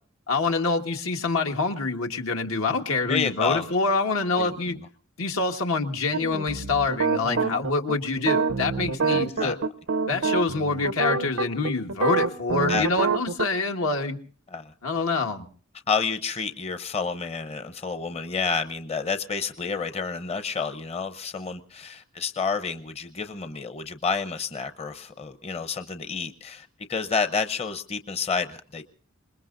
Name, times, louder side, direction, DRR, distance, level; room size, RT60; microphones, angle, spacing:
voice 1, 0.3-4.7 5.2-9.6 10.1-14.2 14.8-15.5, left 3 dB, 85° left, 3 dB, 1.5 m, -26 dB
voice 2, 3.1-3.6 4.4-4.6 7.3-7.6 9.1-9.6 12.7-12.9 14.5-14.7 15.9-28.8, left 5 dB, 30° left, 9 dB, 0.7 m, -29 dB
sound 1, 6.1-13.5, right 4 dB, 90° right, 0.7 m, -26 dB
26.5 x 21.0 x 2.6 m, 0.43 s
head